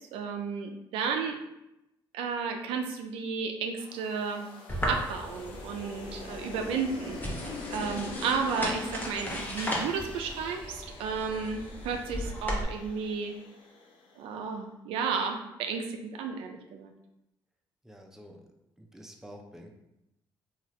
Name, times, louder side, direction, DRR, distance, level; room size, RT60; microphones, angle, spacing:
voice 1, 0.1-1.4 2.1-4.5 4.9-7.2 7.7-13.4 14.2-16.9, right 5 dB, 85° right, 4 dB, 0.3 m, -33 dB
sound 1, 3.8-14.1, left 3 dB, 75° left, 0.5 m, -43 dB
sound 2, 4.7-12.6, equal, 20° left, 0.8 m, -36 dB
voice 2, 17.8-18.4 18.8-19.7, equal, 5° right, 2 dB, 0.5 m, -48 dB
2.7 x 2.4 x 3.1 m, 0.88 s
supercardioid pair, 70°, 9 cm